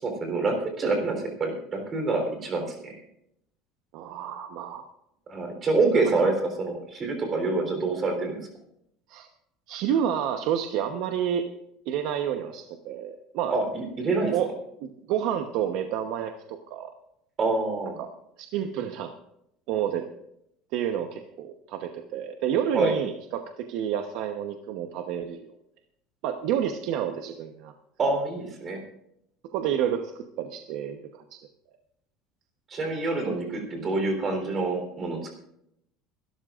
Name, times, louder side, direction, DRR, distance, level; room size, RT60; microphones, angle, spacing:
voice 1, 0.0-3.0 5.3-8.4 13.5-14.3 17.4-18.0 22.7-22.9 28.0-28.8 32.7-35.3, right 3 dB, 25° right, 3 dB, 3.7 m, -26 dB
voice 2, 3.9-4.9 6.2-6.3 9.1-9.3 9.7-11.5 11.9-13.5 14.3-14.5 14.8-16.9 18.0-18.1 18.4-19.1 19.7-20.1 20.7-25.5 26.2-27.7 29.5-30.1 30.4-31.5, right 9 dB, 55° right, 5 dB, 1.0 m, -29 dB
24.5 x 13.0 x 2.5 m, 0.76 s
cardioid pair, 170°, 0 cm